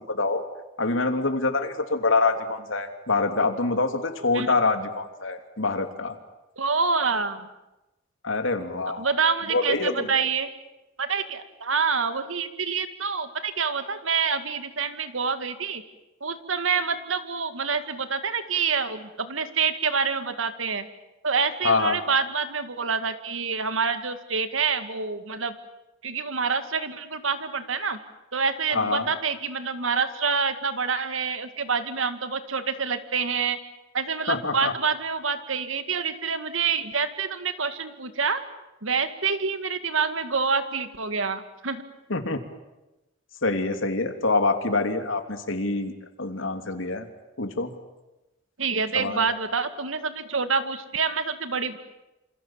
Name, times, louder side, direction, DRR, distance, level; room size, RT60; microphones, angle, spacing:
voice 1, 0.1-0.4 0.8-6.2 8.2-9.0 9.5-10.1 21.6-22.0 28.7-29.1 34.3-34.7 42.1-42.4 43.4-45.9 46.2-47.1 47.4-47.7 48.9-49.2, left 3 dB, 80° left, 6 dB, 3.0 m, -25 dB
voice 2, 6.6-7.5 9.0-10.5 11.0-15.8 16.2-20.9 21.2-25.6 26.0-28.0 28.3-33.6 33.9-38.4 38.8-41.8 48.6-51.8, right 5 dB, 85° right, 10 dB, 2.1 m, -27 dB
27.5 x 27.5 x 7.4 m, 1.0 s
head